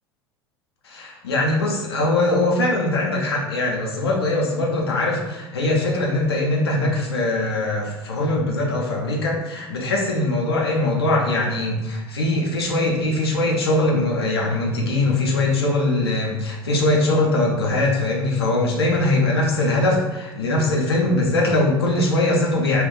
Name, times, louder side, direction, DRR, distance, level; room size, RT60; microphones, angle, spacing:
voice 1, 0.8-22.8, left 2 dB, 75° left, -2 dB, 0.5 m, -21 dB
2.3 x 2.3 x 3.6 m, 1.0 s
figure-of-eight pair, 70°, 13 cm